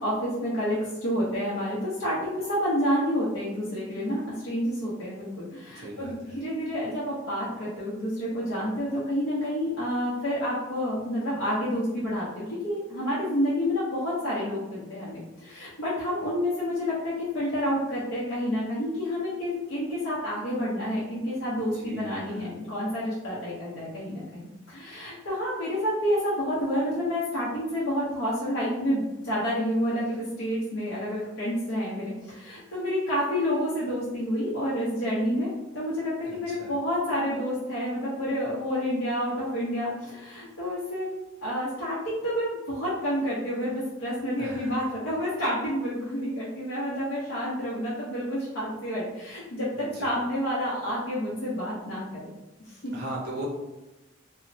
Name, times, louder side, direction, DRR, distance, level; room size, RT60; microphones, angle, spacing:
voice 1, 0.0-52.3 52.6-52.9, equal, 85° left, -8 dB, 0.7 m, -29 dB
voice 2, 5.7-6.4 21.6-22.5 36.3-36.7 44.4-44.9 49.7-50.1 52.9-53.5, right 1 dB, 50° right, -4 dB, 0.7 m, -39 dB
2.9 x 2.0 x 2.6 m, 1.0 s
head